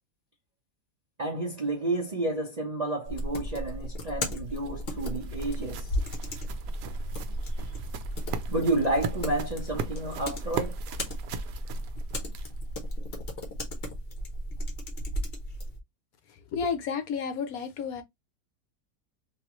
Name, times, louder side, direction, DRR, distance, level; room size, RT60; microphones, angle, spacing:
voice 1, 1.2-5.9 8.5-10.8, right 2 dB, 40° right, 0.6 m, -30 dB
sound 1, 3.0-15.8, equal, 40° left, 1.0 m, -35 dB
sound 2, 4.2-12.7, right 6 dB, 85° right, 1.2 m, -39 dB
voice 2, 16.5-18.0, left 6 dB, 70° left, 1.0 m, -31 dB
3.5 x 3.0 x 3.0 m
omnidirectional pair, 1.8 m